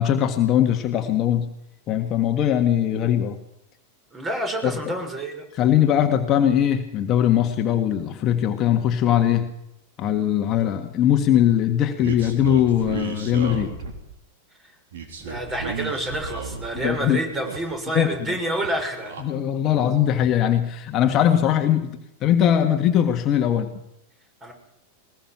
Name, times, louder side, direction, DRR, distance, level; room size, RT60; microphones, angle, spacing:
voice 1, 0.0-1.5 1.9-3.4 4.6-4.9 5.5-9.5 10.0-13.7 16.8-17.2 17.9-18.1 19.2-23.7, left 10 dB, 35° left, 5 dB, 1.7 m, -20 dB
voice 2, 4.1-5.4 15.2-19.1 24.4-24.5, right 1 dB, 20° right, 4 dB, 6.3 m, -28 dB
sound 1, 12.0-14.1 14.9-16.9 17.2-18.2 18.4-19.2, right 5 dB, 60° right, 3.9 m, -34 dB
21.5 x 20.0 x 6.2 m, 0.78 s
figure-of-eight pair, 90°, 0 cm